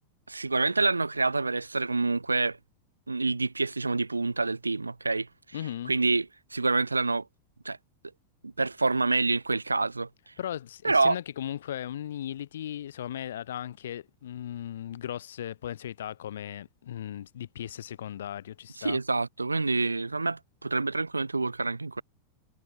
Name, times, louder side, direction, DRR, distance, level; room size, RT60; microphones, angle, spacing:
voice 1, 0.3-2.6 3.1-5.3 5.9-6.3 6.5-7.2 7.6-7.8 8.4-10.1 10.8-11.2 18.8-22.0, right 3 dB, 80° right, 2.2 m, -27 dB
voice 2, 5.5-5.9 10.4-19.0, left 11 dB, 60° left, 8.0 m, -37 dB
figure-of-eight pair, 90°, 0 cm